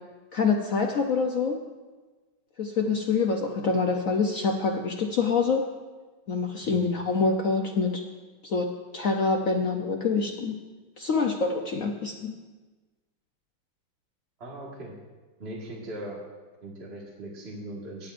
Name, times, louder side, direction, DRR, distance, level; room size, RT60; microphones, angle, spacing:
voice 1, 0.3-1.6 2.6-5.7 6.3-8.0 8.4-10.6 11.0-12.3, left 4 dB, 65° left, 2 dB, 0.8 m, -26 dB
voice 2, 14.4-14.9 15.4-16.2 16.6-18.1, right 1 dB, 30° right, -4 dB, 1.8 m, -39 dB
16.0 x 10.0 x 2.6 m, 1.3 s
omnidirectional pair, 2.2 m